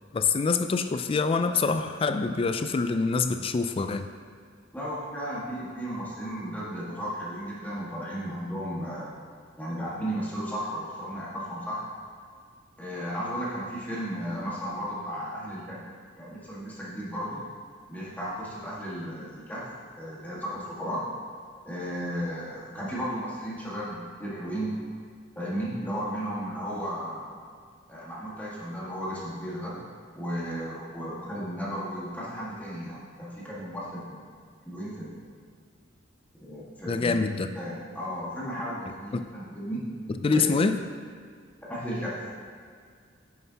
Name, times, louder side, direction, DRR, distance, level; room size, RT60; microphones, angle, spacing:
voice 1, 0.1-4.1 36.9-37.5 39.1-39.2 40.2-40.8, left 4 dB, 30° left, 8 dB, 0.3 m, -25 dB
voice 2, 4.7-9.2 9.6-11.8 12.8-15.8 16.2-17.4 17.9-19.6 20.0-21.0 21.6-24.7 25.3-27.3 27.9-29.7 30.1-34.3 34.6-35.2 36.4-37.2 37.5-39.8 40.3-40.6 41.7-42.1, equal, 10° left, -8 dB, 1.6 m, -34 dB
8.6 x 6.7 x 2.8 m, 2.1 s
head